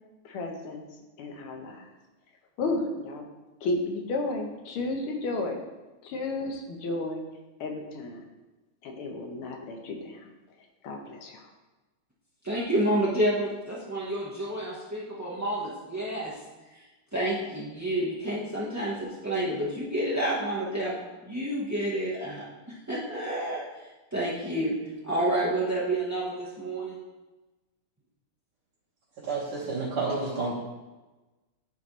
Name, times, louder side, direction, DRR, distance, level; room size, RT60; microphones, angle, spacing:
voice 1, 0.3-0.8 1.2-1.9 2.6-3.3 3.6-5.6 6.0-7.2 7.6-8.2 8.8-10.3 10.8-11.5, left 2 dB, 85° left, 2 dB, 1.8 m, -32 dB
voice 2, 12.4-16.3 17.1-21.0 21.2-22.5 22.9-23.6 24.1-24.7 25.0-27.0, right 1 dB, 15° right, -8 dB, 0.5 m, -29 dB
voice 3, 29.3-30.5, right 3 dB, 80° right, -9 dB, 2.4 m, -30 dB
11.0 x 4.2 x 3.1 m, 1.1 s
omnidirectional pair, 2.3 m